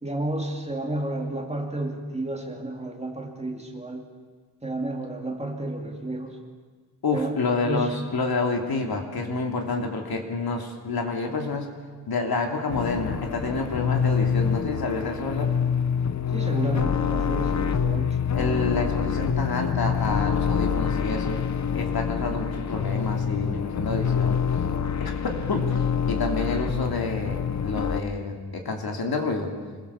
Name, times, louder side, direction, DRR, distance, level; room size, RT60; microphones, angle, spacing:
voice 1, 0.0-4.0 4.6-6.4 7.1-7.4 7.6-8.0 16.3-18.2, right 2 dB, 15° right, 2 dB, 2.5 m, -31 dB
voice 2, 7.0-11.7 12.1-15.5 18.3-21.4 21.7-24.4 25.0-29.5, left 3 dB, 65° left, 3 dB, 3.1 m, -28 dB
sound 1, 12.7-28.0, left 7 dB, 45° left, 1.0 m, -26 dB
26.0 x 22.0 x 7.2 m, 1.5 s
wide cardioid pair, 170°, 40 cm